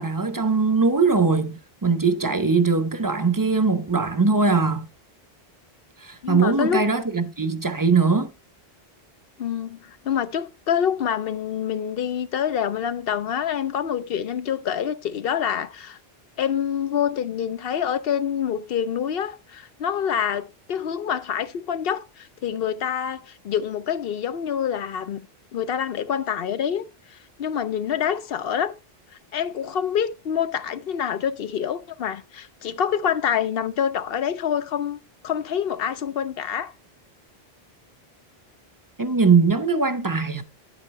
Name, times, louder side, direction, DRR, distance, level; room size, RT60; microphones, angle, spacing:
voice 1, 0.0-4.9 6.0-8.3 39.0-40.4, right 4 dB, 20° right, 0.7 m, -21 dB
voice 2, 6.2-6.9 9.4-16.0 16.4-25.2 25.5-28.7 29.3-35.0 35.2-36.7, left 8 dB, 70° left, 0.8 m, -26 dB
9.4 x 8.1 x 3.2 m
omnidirectional pair, 1.0 m